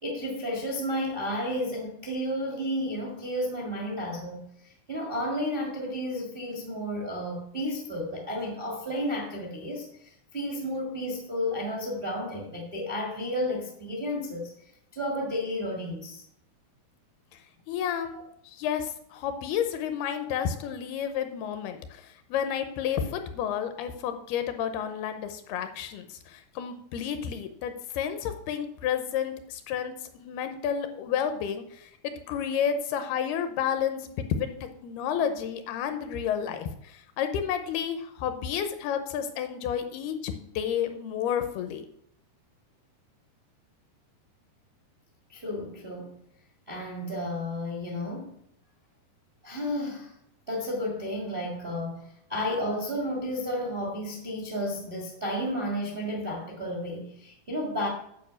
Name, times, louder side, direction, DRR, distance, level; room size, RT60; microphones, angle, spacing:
voice 1, 0.0-14.5 14.9-16.2 18.1-18.2 45.3-46.1 46.7-48.3 49.4-50.1 50.5-57.9, equal, 50° right, 0 dB, 0.6 m, -32 dB
voice 2, 17.7-18.1 18.4-41.9, left 8 dB, 75° left, 8 dB, 2.5 m, -31 dB
9.5 x 5.4 x 6.9 m, 0.71 s
omnidirectional pair, 4.9 m